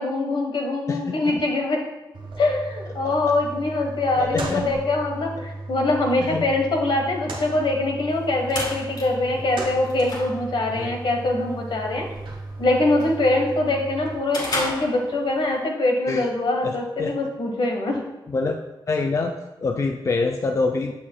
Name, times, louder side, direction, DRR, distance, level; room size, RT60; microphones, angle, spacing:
voice 1, 0.0-1.8 2.4-12.0 12.6-18.0, left 2 dB, 70° left, 2 dB, 1.2 m, -23 dB
voice 2, 0.9-1.3 3.0-3.1 4.2-4.6 5.4-5.5 6.2-6.5 10.7-10.9 16.1-16.3 16.6-17.1 18.3-18.6 18.9-20.9, left 3 dB, 40° left, 4 dB, 0.4 m, -26 dB
sound 1, 2.1-14.1, right 2 dB, 75° right, 1.5 m, -36 dB
sound 2, 8.1-15.6, left 1 dB, 55° left, 2.1 m, -35 dB
7.4 x 6.4 x 2.2 m, 1.1 s
cardioid pair, 80°, 9 cm